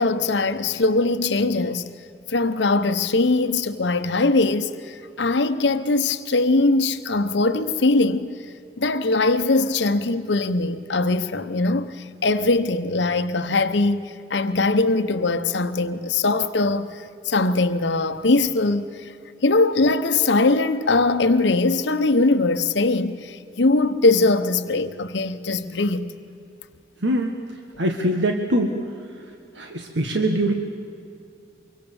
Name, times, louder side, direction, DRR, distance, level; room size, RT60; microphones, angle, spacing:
voice 1, 0.0-1.9 2.3-8.4 8.8-19.1 19.4-26.1, left 3 dB, 80° left, 0.9 m, -21 dB
voice 2, 27.0-27.3 27.8-28.7 29.5-30.5, right 1 dB, 90° right, 1.6 m, -22 dB
24.0 x 24.0 x 7.1 m
head